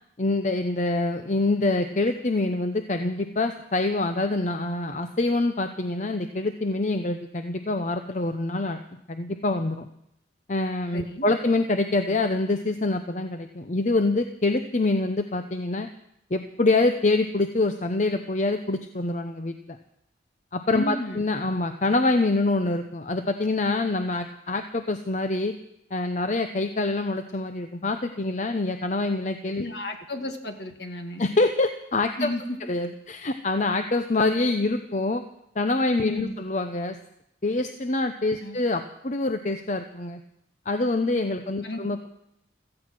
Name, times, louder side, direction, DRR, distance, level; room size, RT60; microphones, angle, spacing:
voice 1, 0.2-8.8 9.1-9.9 10.5-15.9 16.3-19.8 20.5-25.5 25.9-29.6 31.2-32.3 32.7-35.2 35.6-37.0 37.4-40.2 40.7-42.1, left 2 dB, 40° left, 7 dB, 0.7 m, -25 dB
voice 2, 10.9-11.2 20.7-21.2 29.6-31.2 32.2-32.6 36.1-36.3 38.4-38.6 41.6-41.8, left 1 dB, 60° left, 5 dB, 2.0 m, -33 dB
16.5 x 14.5 x 6.1 m, 0.77 s
head